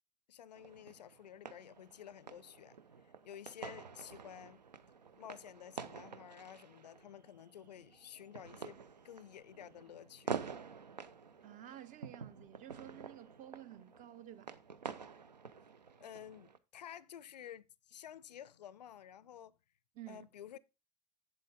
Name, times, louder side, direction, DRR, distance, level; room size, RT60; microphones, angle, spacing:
voice 1, 0.3-2.8 3.0-4.6 5.2-10.4 16.0-19.5 20.1-20.6, left 10 dB, 75° left, 0.4 m, -52 dB
sound 1, 0.5-16.6, right 6 dB, 85° right, 0.5 m, -48 dB
voice 2, 11.4-14.5 20.0-20.3, right 12 dB, 40° right, 0.6 m, -51 dB
8.2 x 7.7 x 3.5 m
figure-of-eight pair, 70°, 21 cm